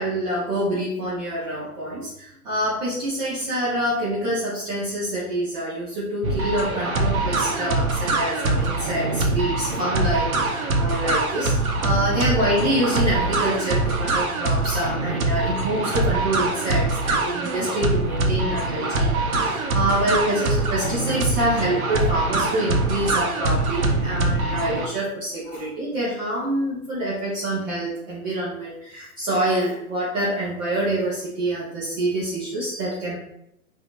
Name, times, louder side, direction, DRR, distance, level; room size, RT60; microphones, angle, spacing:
voice 1, 0.0-33.2, right 1 dB, 30° right, -7 dB, 0.8 m, -26 dB
sound 1, 6.2-24.9, right 2 dB, 65° right, 0.8 m, -23 dB
4.2 x 2.7 x 2.4 m, 0.78 s
hypercardioid pair, 130°, 45 cm